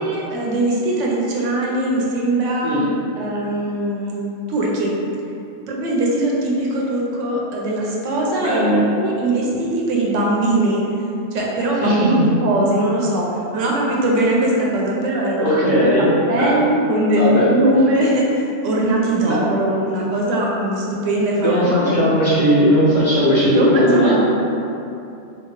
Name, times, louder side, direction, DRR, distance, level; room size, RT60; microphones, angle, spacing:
voice 1, 0.0-2.7 3.2-4.2 4.5-4.9 5.7-10.8 11.3-13.3 13.5-22.1 23.4-24.1, right 1 dB, 90° right, -3 dB, 0.9 m, -20 dB
voice 2, 8.4-8.8 11.8-12.2 15.4-16.6 17.2-17.5 19.2-19.4 21.4-24.1, equal, 30° left, -10 dB, 0.7 m, -17 dB
2.8 x 2.4 x 2.9 m, 2.7 s
omnidirectional pair, 1.2 m